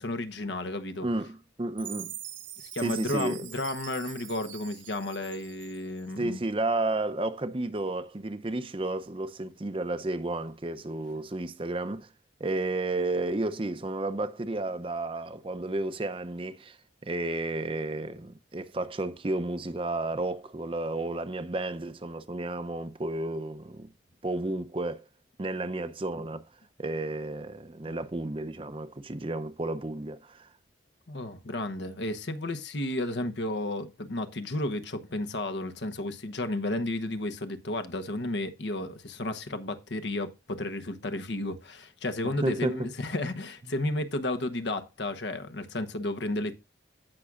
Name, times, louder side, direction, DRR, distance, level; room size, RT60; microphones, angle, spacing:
voice 1, 0.0-1.1 2.6-6.4 31.1-46.5, left 1 dB, 70° left, 1.0 m, -32 dB
voice 2, 1.0-2.1 2.8-3.5 6.2-12.1 12.4-16.8 17.0-23.9 24.2-25.0 25.4-26.4 26.8-30.5 42.4-42.9, right 2 dB, 30° right, 0.6 m, -32 dB
Chime, 1.8-6.0, right 11 dB, 90° right, 1.4 m, -43 dB
16.5 x 6.1 x 2.5 m
head